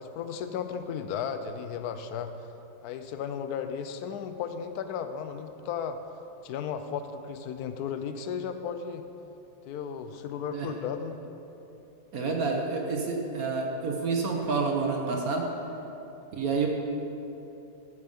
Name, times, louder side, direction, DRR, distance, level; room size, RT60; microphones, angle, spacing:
voice 1, 0.0-2.5 2.8-6.0 6.4-9.0 9.7-11.2, left 7 dB, 70° left, 9 dB, 1.1 m, -35 dB
voice 2, 12.1-15.5 16.3-16.7, right 4 dB, 55° right, 1 dB, 1.4 m, -28 dB
14.5 x 6.8 x 5.3 m, 3.0 s
omnidirectional pair, 1.9 m